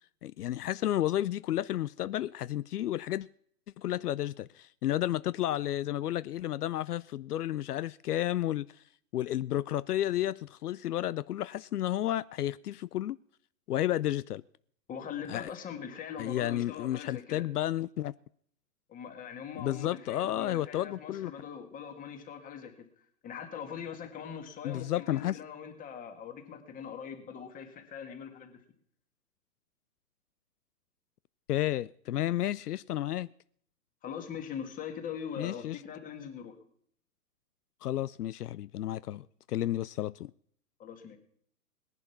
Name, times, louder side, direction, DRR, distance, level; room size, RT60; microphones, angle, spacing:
voice 1, 0.2-3.3 3.8-8.8 9.1-13.2 13.7-14.4 15.3-15.5 16.2-18.1 19.6-21.3 24.6-25.4 31.5-33.3 35.4-35.8 37.8-40.3, left 13 dB, 75° left, 0.5 m, -32 dB
voice 2, 14.9-17.5 18.9-22.9 23.2-28.6 34.0-36.6 40.8-41.2, left 7 dB, 15° left, 1.9 m, -42 dB
18.5 x 11.0 x 5.9 m
hypercardioid pair, 135°, 46 cm